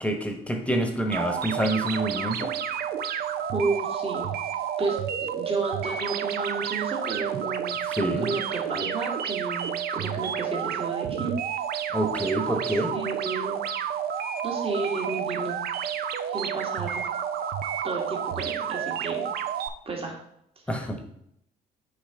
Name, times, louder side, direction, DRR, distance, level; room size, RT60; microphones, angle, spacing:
voice 1, 0.0-2.5 7.9-8.3 11.9-12.9 20.7-21.1, right 1 dB, 5° left, 4 dB, 1.2 m, -27 dB
Sci-Fi Retro Alien Signals, 1.1-19.7, right 8 dB, 60° right, 0.6 m, -30 dB
voice 2, 3.5-4.3 4.8-11.3 12.2-13.6 14.4-15.6 16.3-17.0 17.8-19.3 19.9-20.2 20.7-20.8, right 3 dB, 35° right, 0 dB, 1.8 m, -32 dB
6.5 x 5.0 x 3.7 m, 0.74 s
supercardioid pair, 65°, 18 cm